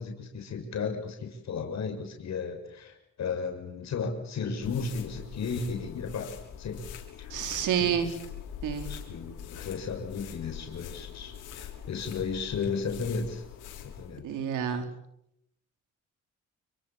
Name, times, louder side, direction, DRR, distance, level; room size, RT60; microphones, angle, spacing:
voice 1, 0.0-6.3 6.6-6.8 7.2-7.3 7.8-8.0 8.9-13.4 13.8-14.3, left 5 dB, 60° left, 3 dB, 7.0 m, -34 dB
sound 1, 4.6-14.2, left 8 dB, 85° left, 6.4 m, -43 dB
voice 2, 7.3-8.1 8.6-8.9 14.2-14.9, right 8 dB, 80° right, 6 dB, 4.9 m, -28 dB
29.5 x 25.0 x 7.6 m, 0.81 s
cardioid pair, 90°, 30 cm